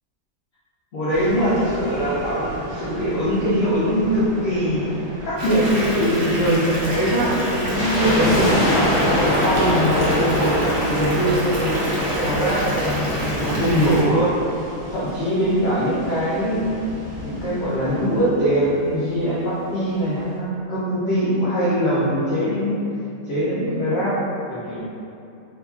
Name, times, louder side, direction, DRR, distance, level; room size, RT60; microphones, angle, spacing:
voice 1, 0.9-4.8 5.2-8.8 9.2-10.6 10.9-12.9 13.4-14.3 14.9-16.8 17.2-22.8 23.3-24.2 24.5-24.8, equal, 80° left, -10 dB, 0.5 m, -22 dB
sound 1, 1.1-18.3, right 1 dB, 90° right, 1.1 m, -37 dB
Water tap faucet / Bathtub (filling or washing) / Fill (with liquid), 5.4-14.0, right 1 dB, 65° right, 0.5 m, -27 dB
sound 2, 7.7-15.0 15.3-15.4 16.0-17.9 18.1-18.2 18.4-18.7 19.2-19.3, left 1 dB, 40° left, 0.7 m, -24 dB
2.8 x 2.4 x 2.3 m, 2.6 s
omnidirectional pair, 1.7 m